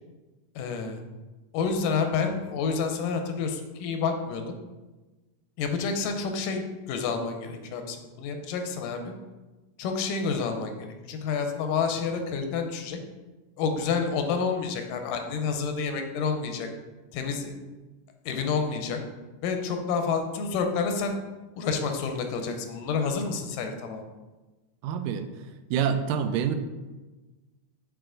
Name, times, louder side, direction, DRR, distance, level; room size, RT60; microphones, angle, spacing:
voice 1, 0.6-1.0 1.5-4.6 5.6-9.1 9.8-13.0 13.6-16.7 17.1-17.5 18.3-19.0 19.4-21.2 21.6-24.0, left 5 dB, 85° left, 5 dB, 2.3 m, -29 dB
voice 2, 24.8-25.3 25.7-26.5, right 8 dB, 90° right, 8 dB, 2.2 m, -26 dB
7.1 x 4.9 x 3.8 m, 1.2 s
omnidirectional pair, 3.8 m